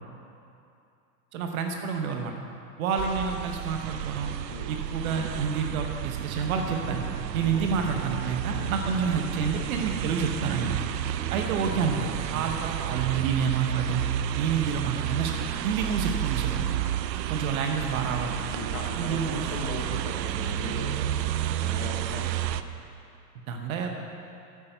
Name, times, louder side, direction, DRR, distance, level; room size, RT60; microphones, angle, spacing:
voice 1, 1.3-2.3 2.8-4.3 4.7-7.0 7.3-10.8 11.3-14.0 14.3-15.4 15.6-16.7 17.3-18.4 19.0-19.7 23.5-24.0, right 6 dB, 55° right, 3 dB, 1.1 m, -29 dB
sound 1, 3.0-22.6, right 11 dB, 85° right, 0.6 m, -31 dB
voice 2, 18.5-21.0 21.6-22.3, left 4 dB, 30° left, 0 dB, 0.9 m, -38 dB
9.2 x 8.5 x 5.6 m, 2.6 s
hypercardioid pair, 135°, 49 cm